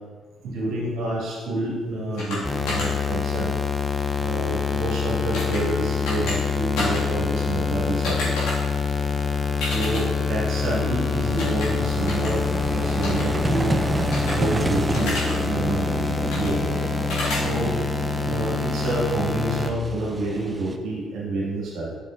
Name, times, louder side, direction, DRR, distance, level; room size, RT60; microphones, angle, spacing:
voice 1, 0.4-3.6 4.2-8.3 9.6-13.7 14.4-16.7 17.3-17.7 18.2-22.0, right 2 dB, 60° right, -5 dB, 2.0 m, -28 dB
sound 1, 2.2-2.4 2.7-2.9 5.3-5.6 6.0-6.4 6.8-7.0 8.0-8.5 9.6-10.0 11.4-11.7 12.1-12.3 13.0-13.2 14.1-14.3 14.9-15.3 16.3-16.5 17.1-17.4, left 2 dB, 70° left, 2.0 m, -29 dB
sound 2, 2.4-19.7, left 5 dB, 15° left, 0.6 m, -26 dB
Vehicle, 5.1-5.2 7.1-7.2 7.4-20.8, right 2 dB, 25° right, 0.5 m, -31 dB
7.8 x 5.5 x 2.5 m, 1.4 s
figure-of-eight pair, 45°, 0 cm